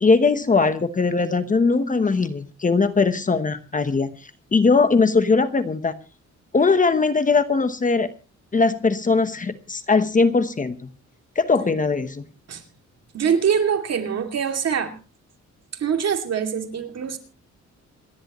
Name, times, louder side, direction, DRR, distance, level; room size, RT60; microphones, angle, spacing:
voice 1, 0.0-4.2 4.5-5.9 6.5-8.1 8.5-10.9 11.3-12.3, left 4 dB, 25° left, 11 dB, 1.0 m, -20 dB
voice 2, 13.1-15.0 15.7-17.2, right 7 dB, 60° right, 4 dB, 2.7 m, -23 dB
27.5 x 11.0 x 3.0 m, 0.33 s
cardioid pair, 130°, 30 cm